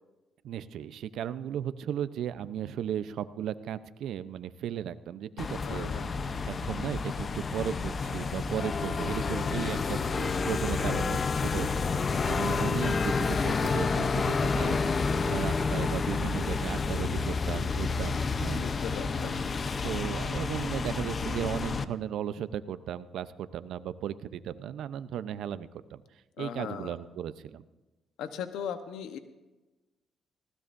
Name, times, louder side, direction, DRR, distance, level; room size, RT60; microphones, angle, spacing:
voice 1, 0.4-6.1 6.5-11.7 12.2-18.6 19.2-26.0 26.4-27.6, right 10 dB, 75° right, 13 dB, 0.7 m, -36 dB
sound 1, 5.4-21.8, left 4 dB, 40° left, 0.7 m, -29 dB
voice 2, 5.6-6.1 18.6-19.5 26.4-26.9 28.2-29.2, left 8 dB, 90° left, 9 dB, 1.0 m, -38 dB
19.5 x 16.5 x 2.6 m, 1.1 s
cardioid pair, 90°, 0 cm